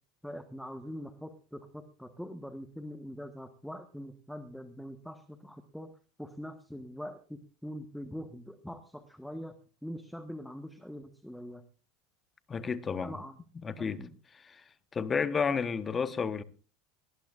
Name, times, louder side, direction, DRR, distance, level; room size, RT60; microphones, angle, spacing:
voice 1, 0.2-5.9 6.2-9.5 9.8-11.6 13.0-13.4 13.8-14.1, equal, ahead, 1.3 m, -43 dB
voice 2, 12.5-13.2 13.6-14.0 14.4-14.6 14.9-16.4, left 5 dB, 25° left, 1.2 m, -31 dB
19.0 x 18.0 x 2.5 m
hypercardioid pair, 100°, 0 cm